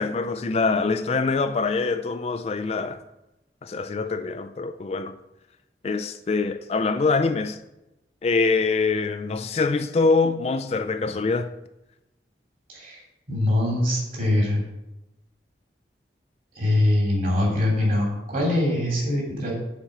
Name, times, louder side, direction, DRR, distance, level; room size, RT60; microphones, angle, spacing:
voice 1, 0.0-3.0 3.6-5.2 5.8-7.6 8.2-11.5, left 4 dB, 35° left, 0.3 m, -24 dB
voice 2, 13.3-14.6 16.5-19.5, left 1 dB, 50° right, 2.9 m, -23 dB
7.2 x 4.5 x 6.7 m
head